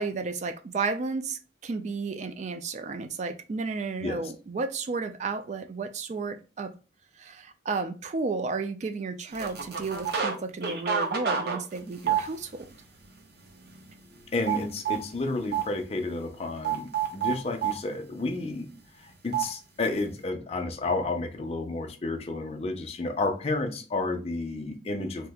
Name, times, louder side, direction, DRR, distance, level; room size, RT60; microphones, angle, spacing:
voice 1, 0.0-6.7 7.2-12.7, right 4 dB, 40° right, 0.3 m, -32 dB
sound 1, 9.3-10.3 10.6-12.7 13.2-13.4 13.7-15.0 15.5-15.7 16.6-17.8 19.3-19.5, right 8 dB, 55° right, 0.7 m, -28 dB
voice 2, 14.3-18.7 19.0-25.3, left 2 dB, 35° left, 0.5 m, -31 dB
2.8 x 2.4 x 3.5 m
head